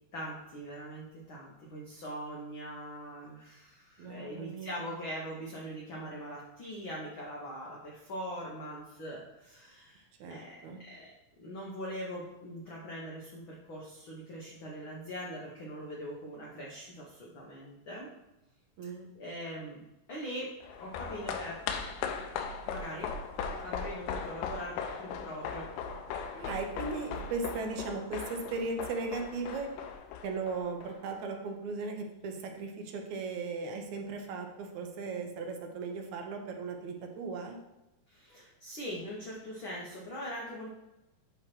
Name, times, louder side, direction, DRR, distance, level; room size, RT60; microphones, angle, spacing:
voice 1, 0.1-10.6 10.9-11.1 11.4-18.1 18.8-18.9 19.2-19.8 20.1-20.5 20.8-21.6 22.7-23.1 23.6-25.7 38.1-40.7, equal, 75° left, -3 dB, 1.1 m, -42 dB
voice 2, 4.0-4.8 10.2-10.8 18.8-19.1 26.4-29.7 30.2-37.6, right 4 dB, 75° right, 4 dB, 1.9 m, -37 dB
sound 1, 20.6-31.2 31.5-31.6, left 6 dB, 90° left, 2.3 m, -38 dB
8.0 x 3.0 x 5.9 m, 0.94 s
omnidirectional pair, 3.7 m